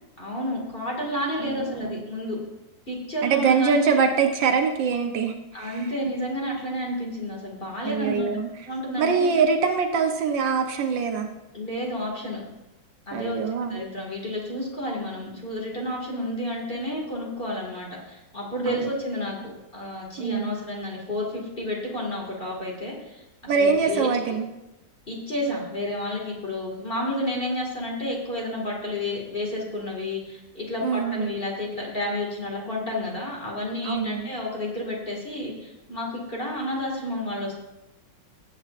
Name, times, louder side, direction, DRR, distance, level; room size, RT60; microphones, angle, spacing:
voice 1, 0.2-2.4 2.9-3.8 5.5-8.3 8.7-9.3 11.5-12.4 13.1-19.4 19.7-24.1 25.1-37.6, left 1 dB, 30° left, -2 dB, 2.0 m, -31 dB
voice 2, 1.4-2.0 3.2-5.7 7.8-8.5 9.0-11.3 13.1-13.8 18.7-18.9 20.2-20.5 23.5-24.5 30.8-31.3 33.8-34.2, right 5 dB, 70° right, 5 dB, 1.4 m, -23 dB
17.0 x 7.8 x 2.5 m, 0.97 s
omnidirectional pair, 2.2 m